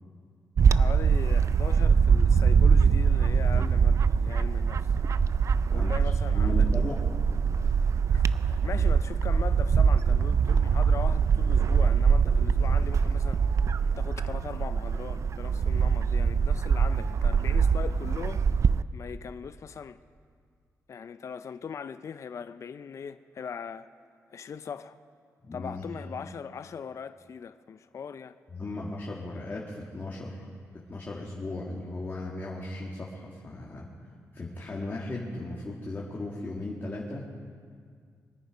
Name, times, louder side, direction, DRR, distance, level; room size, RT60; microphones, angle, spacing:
Bird / Wind, 0.6-18.8, right 6 dB, 55° right, 0.3 m, -23 dB
voice 1, 0.7-5.0 5.7-6.7 7.8-7.9 8.1-13.6 14.0-18.6 18.9-20.0 20.9-23.9 24.3-25.0 25.5-28.4, left 6 dB, 55° left, 0.5 m, -40 dB
voice 2, 6.3-7.1 25.4-25.8 28.5-30.5 30.9-33.9 34.3-37.3, left 2 dB, 35° left, 1.9 m, -36 dB
23.0 x 9.3 x 5.1 m
cardioid pair, 90°, 6 cm